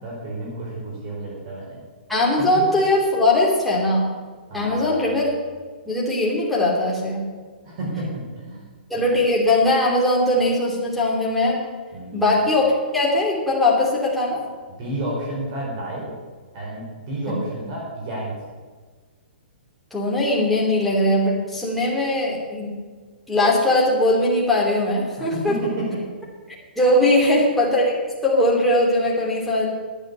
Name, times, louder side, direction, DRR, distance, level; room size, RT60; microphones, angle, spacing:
voice 1, 0.0-1.8 4.5-5.1 7.6-8.6 8.9-9.0 11.9-12.2 14.7-16.1 16.5-18.4 25.2-26.0 27.0-27.4, right 1 dB, 40° right, -4 dB, 4.7 m, -31 dB
voice 2, 2.1-4.1 4.5-5.3 5.9-7.3 8.9-11.6 12.1-14.4 19.9-22.7 23.3-25.5 26.8-27.9 28.2-29.7, left 1 dB, ahead, -5 dB, 2.9 m, -20 dB
11.0 x 8.8 x 8.5 m, 1.5 s
hypercardioid pair, 145°, 6 cm